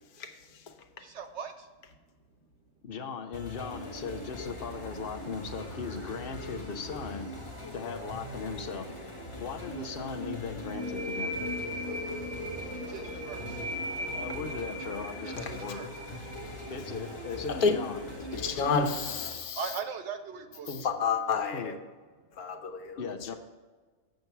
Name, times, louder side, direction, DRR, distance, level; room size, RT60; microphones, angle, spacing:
voice 1, 1.0-1.7 12.9-13.6 15.2-15.9 19.5-20.7, right 6 dB, 65° right, 8 dB, 0.7 m, -39 dB
voice 2, 2.8-7.3 7.7-8.9 9.4-11.4 14.1-15.8 16.7-18.0 20.7-20.9 21.5-21.7 23.0-23.3, left 5 dB, 50° left, 5 dB, 0.7 m, -38 dB
sound 1, 3.3-19.3, left 1 dB, 20° left, 1.1 m, -41 dB
sound 2, 10.7-18.1, left 1 dB, 40° right, 1.0 m, -38 dB
voice 3, 18.3-19.8 20.8-21.7 22.4-23.0, left 5 dB, 90° left, 7 dB, 1.4 m, -29 dB
7.8 x 6.8 x 4.6 m, 1.4 s
omnidirectional pair, 1.5 m